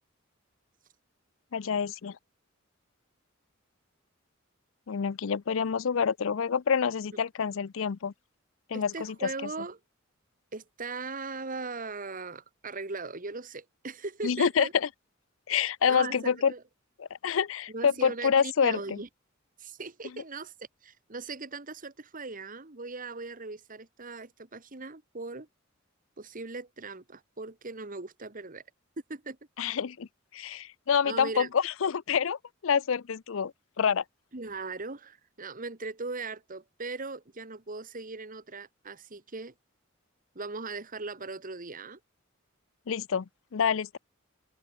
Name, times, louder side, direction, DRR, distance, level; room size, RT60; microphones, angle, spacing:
voice 1, 1.5-2.2 4.9-8.1 8.7-9.5 14.2-14.9 15.5-16.5 17.0-19.0 29.6-30.1 30.3-34.0 42.9-44.0, left 6 dB, 70° left, 0.5 m, -27 dB
voice 2, 8.7-9.8 10.5-14.7 15.9-16.6 17.7-19.1 19.6-20.5 20.8-25.5 26.2-28.6 29.1-29.4 31.0-31.5 34.3-39.5 40.3-42.0, right 3 dB, 45° right, 1.8 m, -39 dB
head